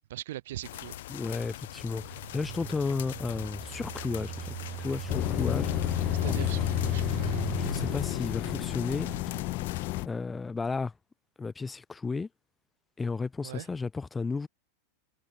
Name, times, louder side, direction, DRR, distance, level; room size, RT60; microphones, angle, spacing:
voice 1, 0.1-1.0 6.2-7.4 13.4-13.7, right 14 dB, 75° right, 1.1 m, -40 dB
sound 1, 0.6-10.0, left 15 dB, 75° left, 1.4 m, -43 dB
voice 2, 1.1-6.5 7.6-9.1 10.0-10.9 11.4-12.3 13.0-14.5, left 4 dB, 15° left, 1.0 m, -33 dB
Engine, 1.7-9.7, right 14 dB, 40° right, 2.1 m, -40 dB
sound 2, 5.1-10.1, left 21 dB, 50° left, 0.7 m, -30 dB
supercardioid pair, 125°, 0 cm